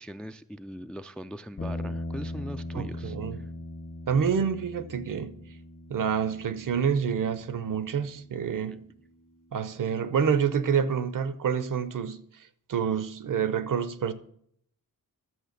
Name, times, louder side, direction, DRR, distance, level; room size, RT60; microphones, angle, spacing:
voice 1, 0.0-3.2, equal, 5° left, 0.3 m, -40 dB
sound 1, 1.6-9.9, left 1 dB, 35° left, 0.9 m, -40 dB
voice 2, 2.7-3.4 4.1-5.3 5.9-8.8 9.5-12.2 12.7-14.1, right 7 dB, 60° right, 0.8 m, -27 dB
11.0 x 6.9 x 6.6 m
wide cardioid pair, 135°, 35 cm